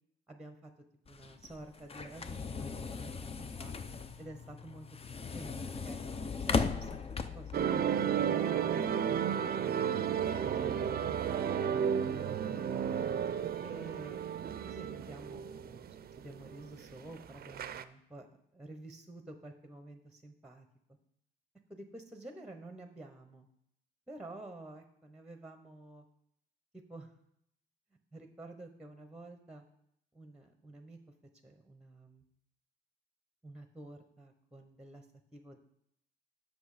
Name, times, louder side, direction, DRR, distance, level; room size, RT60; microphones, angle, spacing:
voice 1, 0.3-0.7 1.1-3.7 4.2-6.0 6.4-9.5 10.4-11.4 12.0-13.1 13.6-14.3 14.6-15.9 16.2-20.7 21.7-23.5 24.1-26.0 26.7-27.1 28.1-29.6 30.1-31.0 31.4-32.2 33.4-35.0 35.3-35.6, right 2 dB, 5° right, 6 dB, 0.9 m, -50 dB
sound 1, 1.1-7.6, left 4 dB, 30° left, 0.6 m, -37 dB
sound 2, 7.5-17.8, right 8 dB, 50° right, 0.5 m, -33 dB
7.9 x 6.3 x 4.9 m, 0.73 s
cardioid pair, 90°, 20 cm